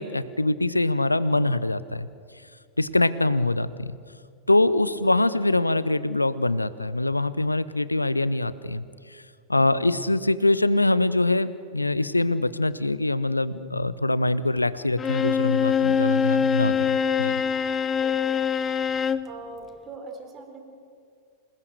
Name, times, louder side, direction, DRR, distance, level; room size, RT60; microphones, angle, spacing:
voice 1, 0.0-2.1 2.8-4.0 4.5-8.8 9.5-17.4, left 2 dB, 85° left, 17 dB, 0.8 m, -24 dB
voice 2, 4.6-4.9 18.0-18.5 19.2-20.6, right 3 dB, 25° right, 4 dB, 3.9 m, -42 dB
Bowed string instrument, 15.0-19.3, left 7 dB, 20° left, 0.8 m, -24 dB
27.5 x 19.5 x 6.7 m, 2.2 s
figure-of-eight pair, 90°, 0 cm